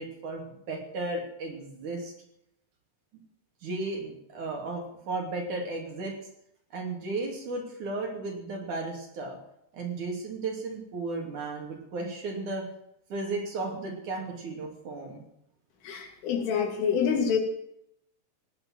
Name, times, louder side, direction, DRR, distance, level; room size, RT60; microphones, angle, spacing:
voice 1, 0.0-2.1 3.6-6.2 6.7-9.4 9.7-12.7 13.1-15.2, right 3 dB, 45° right, 1 dB, 3.7 m, -34 dB
voice 2, 15.8-17.4, left 7 dB, 80° left, 4 dB, 5.1 m, -26 dB
17.5 x 10.5 x 7.7 m, 0.77 s
omnidirectional pair, 5.5 m